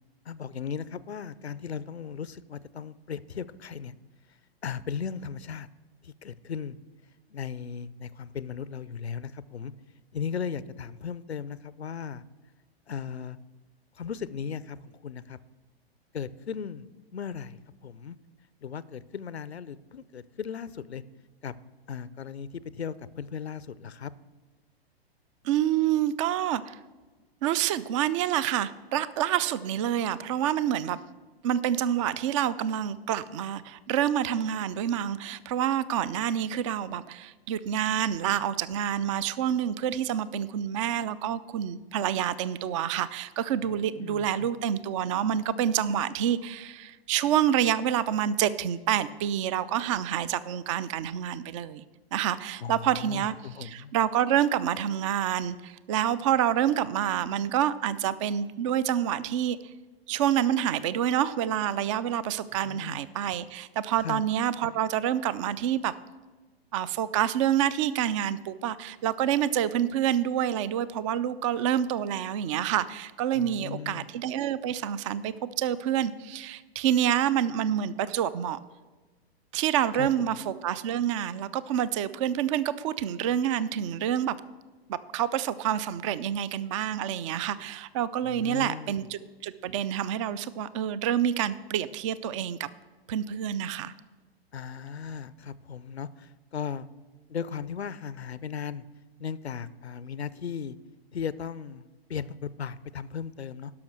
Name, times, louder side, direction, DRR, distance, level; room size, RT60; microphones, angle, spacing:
voice 1, 0.3-3.9 4.6-5.7 6.0-6.8 7.3-9.7 10.1-12.2 12.9-13.4 13.9-15.4 16.1-18.2 18.6-21.0 21.4-21.5 21.9-24.1 43.6-44.5 52.6-53.9 62.5-63.0 64.0-64.2 73.3-74.1 79.9-80.4 88.2-89.1 94.5-96.9 97.3-98.8 99.2-100.8 101.1-103.7, left 7 dB, 85° left, 18 dB, 0.5 m, -37 dB
voice 2, 25.4-26.8 27.4-31.0 31.4-51.8 52.1-53.4 53.6-59.6 60.1-65.9 66.7-78.6 79.5-84.4 84.9-92.7 93.1-93.9, right 10 dB, 30° right, 17 dB, 0.4 m, -27 dB
12.0 x 5.8 x 6.2 m, 1.3 s
figure-of-eight pair, 110°, 31 cm